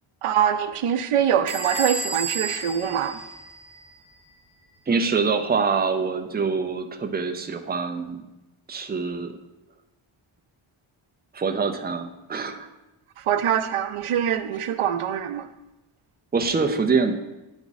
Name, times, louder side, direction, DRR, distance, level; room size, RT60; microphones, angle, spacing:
voice 1, 0.2-3.2 13.3-15.5, right 9 dB, 90° right, 0.6 m, -24 dB
Bell / Squeak, 1.5-4.0, right 3 dB, 40° right, 1.3 m, -32 dB
voice 2, 4.9-8.2 8.7-9.3 11.3-12.7 16.3-17.1, right 5 dB, 20° right, 0.5 m, -25 dB
10.5 x 3.6 x 4.0 m
wide cardioid pair, 130°, 50 cm